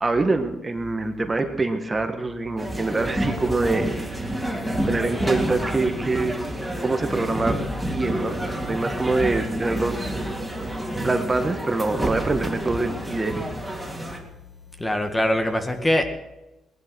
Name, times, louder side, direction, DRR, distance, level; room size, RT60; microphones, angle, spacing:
voice 1, 0.0-3.9 4.9-6.5 6.8-7.5 7.9-8.4 8.7-10.2 11.0-13.3, right 3 dB, 25° right, 6 dB, 1.7 m, -24 dB
sound 1, 2.6-14.2, right 1 dB, 5° right, 3.2 m, -29 dB
voice 2, 14.8-16.0, left 1 dB, 15° left, 6 dB, 1.9 m, -22 dB
19.0 x 11.5 x 6.4 m, 0.99 s
cardioid pair, 90°, 0 cm